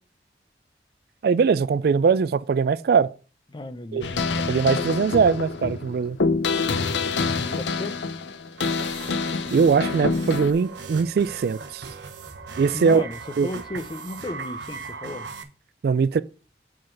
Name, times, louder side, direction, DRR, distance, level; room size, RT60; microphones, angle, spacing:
voice 1, 1.2-3.1 3.9-4.0 4.5-6.2 9.5-11.8 12.6-13.0 13.4-13.5 15.8-16.2, right 5 dB, 60° right, 0.3 m, -21 dB
voice 2, 3.5-4.2 7.2-8.1 12.7-15.3, left 1 dB, 25° left, 0.6 m, -34 dB
sound 1, 4.0-10.5, left 4 dB, 90° left, 0.7 m, -26 dB
sound 2, 8.6-15.4, right 4 dB, 85° right, 0.9 m, -39 dB
7.7 x 3.9 x 5.7 m
head